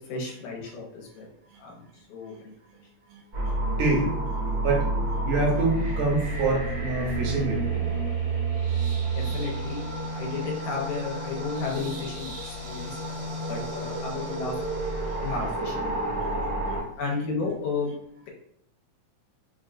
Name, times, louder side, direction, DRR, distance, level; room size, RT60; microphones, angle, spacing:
voice 1, 0.1-1.3 1.6-1.8 2.1-2.5 9.1-9.8 10.1-13.0 13.5-14.5 15.2-16.0 17.0-17.9, left 4 dB, 80° left, -2 dB, 2.3 m, -33 dB
sound 1, 3.3-16.8, right 2 dB, 60° right, 0.9 m, -30 dB
voice 2, 3.6-4.1 4.6-4.9 5.3-7.9 15.1-15.2, right 3 dB, 80° right, -1 dB, 2.2 m, -26 dB
5.3 x 2.3 x 2.6 m, 0.71 s
omnidirectional pair, 3.4 m